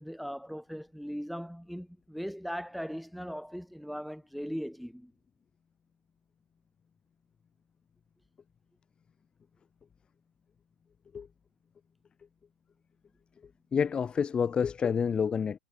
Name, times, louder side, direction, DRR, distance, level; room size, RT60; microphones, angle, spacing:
voice 1, 0.0-5.1, equal, ahead, 2.5 m, -39 dB
voice 2, 13.7-15.6, left 6 dB, 20° left, 1.2 m, -28 dB
supercardioid pair, 135°, 5 cm